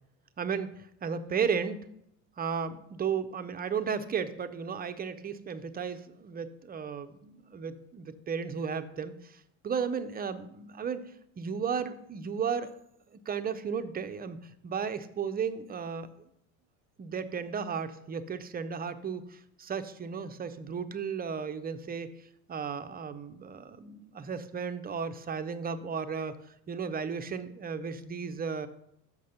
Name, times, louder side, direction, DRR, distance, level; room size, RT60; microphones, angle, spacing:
voice 1, 0.4-1.8 2.4-11.0 11.4-12.7 13.1-16.3 17.0-26.4 26.7-28.7, right 6 dB, 25° right, 10 dB, 0.6 m, -34 dB
6.3 x 6.0 x 5.6 m, 0.77 s
supercardioid pair, 90°, 40 cm